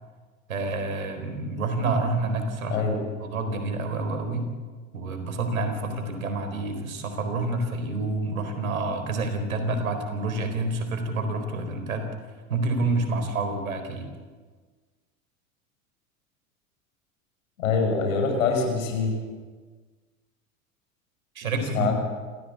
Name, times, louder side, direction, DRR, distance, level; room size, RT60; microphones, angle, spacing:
voice 1, 0.5-2.9 3.2-4.5 4.9-12.1 12.5-14.1 21.4-21.9, right 2 dB, 75° right, 7 dB, 4.2 m, -28 dB
voice 2, 2.7-3.0 17.6-19.1 21.7-21.9, left 5 dB, 70° left, 3 dB, 6.1 m, -24 dB
27.5 x 16.0 x 8.4 m, 1.4 s
figure-of-eight pair, 75°, 41 cm